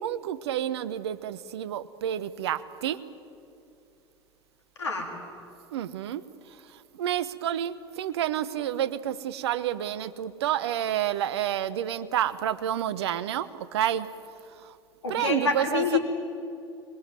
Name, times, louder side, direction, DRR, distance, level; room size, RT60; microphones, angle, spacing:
voice 1, 0.0-3.0 5.7-6.2 6.7-14.1 14.6-14.8 15.1-16.0, right 11 dB, 70° right, 16 dB, 1.0 m, -29 dB
voice 2, 4.8-5.1 15.0-16.0, left 5 dB, 80° left, 2 dB, 3.8 m, -27 dB
24.0 x 21.5 x 7.7 m, 2.6 s
figure-of-eight pair, 75°, 14 cm